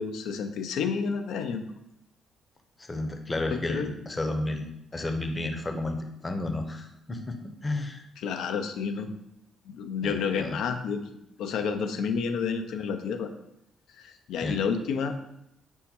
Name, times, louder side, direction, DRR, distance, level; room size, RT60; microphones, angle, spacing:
voice 1, 0.0-1.7 3.5-3.9 8.2-9.1 9.7-11.0 11.4-13.3 14.0-15.2, left 6 dB, 80° left, 7 dB, 0.5 m, -30 dB
voice 2, 2.8-6.0 6.2-8.1 10.0-10.6 14.4-14.6, left 2 dB, 25° left, 5 dB, 0.7 m, -32 dB
5.3 x 2.1 x 4.3 m, 0.81 s
cardioid pair, 75°, 0 cm